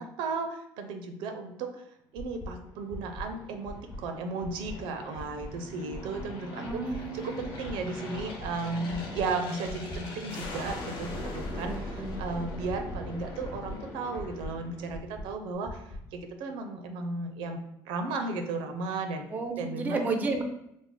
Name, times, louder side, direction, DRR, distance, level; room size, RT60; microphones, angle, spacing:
voice 1, 0.0-1.8 2.1-6.8 7.1-19.2 19.6-20.1, right 3 dB, 90° right, 5 dB, 0.5 m, -35 dB
sound 1, 2.2-2.5 2.9-3.2 3.6-4.0 4.4-4.7 5.1-5.5 5.9-6.2 6.6-7.0 7.4-7.7 8.1-8.5 8.9-9.2 9.6-10.0 10.4-10.7 11.1-11.5 11.9-12.2 12.6-13.0 13.4-13.7 14.1-14.5 14.9-15.2 15.6-16.0, equal, 20° left, 0.6 m, -40 dB
Aircraft, 2.5-15.3, left 2 dB, 65° left, 0.8 m, -41 dB
voice 2, 6.6-7.5 11.6-12.2 19.3-20.4, right 3 dB, 20° right, 5 dB, 0.4 m, -32 dB
3.2 x 2.0 x 3.7 m, 0.79 s
cardioid pair, 140°, 8 cm